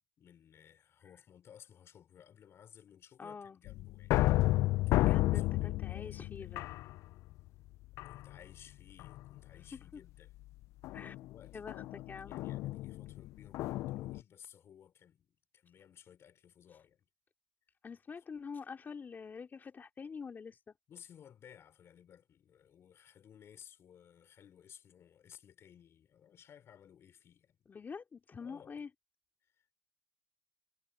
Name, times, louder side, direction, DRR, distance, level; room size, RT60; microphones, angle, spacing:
voice 1, 0.0-4.2 4.5-6.6 8.0-10.3 10.9-15.3 15.5-17.1 20.9-27.7 28.4-28.8 29.4-29.7, left 9 dB, 55° left, 5.1 m, -58 dB
voice 2, 3.2-3.6 5.0-6.7 9.7-9.8 10.9-11.1 11.5-12.4 17.8-20.7 27.7-28.9, left 5 dB, 40° left, 2.8 m, -46 dB
sound 1, 3.7-7.4 7.9-8.5 9.0-9.4 10.8-14.2, left 17 dB, 75° left, 0.4 m, -32 dB
supercardioid pair, 70°, 5 cm